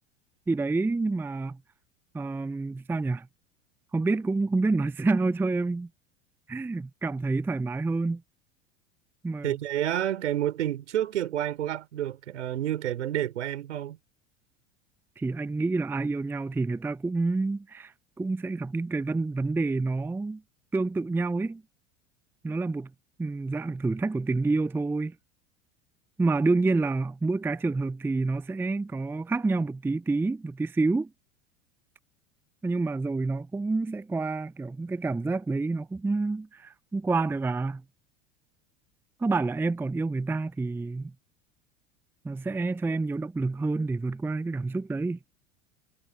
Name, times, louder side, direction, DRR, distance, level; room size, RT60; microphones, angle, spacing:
voice 1, 0.5-1.6 2.1-3.3 3.9-5.9 6.5-8.2 9.2-9.5 15.2-20.4 20.7-21.6 22.4-22.9 23.2-25.1 26.2-31.1 32.6-37.8 39.2-41.1 42.2-45.2, right 3 dB, 5° right, 0.6 m, -28 dB
voice 2, 9.4-14.0, right 12 dB, 70° right, 4.1 m, -29 dB
figure-of-eight pair, 80°, 37 cm